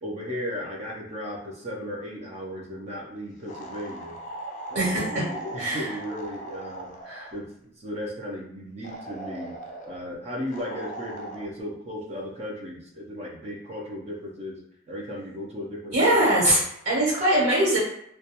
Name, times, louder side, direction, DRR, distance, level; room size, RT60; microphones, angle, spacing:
voice 1, 0.0-4.2 4.7-9.6 9.9-14.6 14.9-16.3, equal, 35° right, -2 dB, 0.5 m, -36 dB
sound 1, 3.5-7.5 8.8-10.0 10.5-11.5, right 1 dB, 40° left, 0.4 m, -39 dB
voice 2, 4.7-5.2 5.6-5.9 7.0-7.3 15.9-17.8, right 1 dB, 65° right, -6 dB, 1.2 m, -22 dB
2.3 x 2.2 x 2.8 m, 0.71 s
head